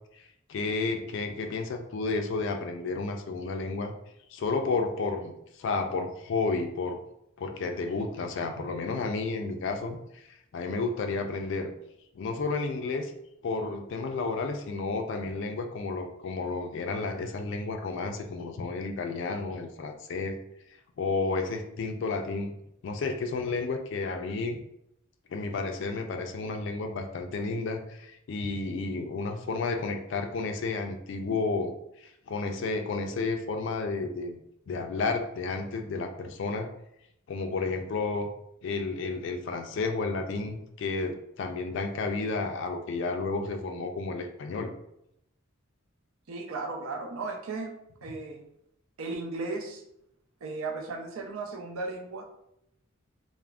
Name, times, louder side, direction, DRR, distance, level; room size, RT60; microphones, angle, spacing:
voice 1, 0.2-3.9 4.3-7.0 7.4-11.7 12.2-13.1 13.4-20.3 21.0-22.5 22.8-24.6 25.3-34.4 34.7-36.7 37.3-38.3 38.6-44.7, left 3 dB, 60° left, 5 dB, 0.3 m, -32 dB
voice 2, 46.3-47.7 48.0-48.4 49.0-49.8 50.4-52.2, right 3 dB, 80° right, 2 dB, 0.5 m, -35 dB
3.3 x 2.0 x 2.3 m, 0.79 s
head